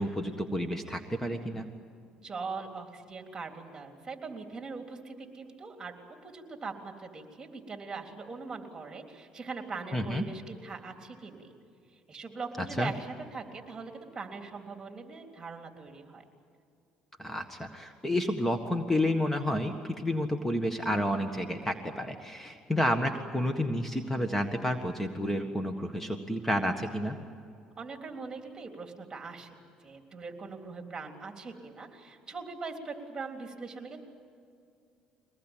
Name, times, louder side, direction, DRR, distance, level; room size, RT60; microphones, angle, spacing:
voice 1, 0.0-1.7 9.9-10.2 12.8-12.9 17.2-27.2, left 1 dB, 10° left, 7 dB, 1.7 m, -30 dB
voice 2, 2.2-5.9 6.2-11.5 12.1-16.2 27.8-34.0, right 4 dB, 25° right, 4 dB, 3.6 m, -41 dB
24.0 x 19.5 x 9.2 m, 2.4 s
supercardioid pair, 85°, 2 cm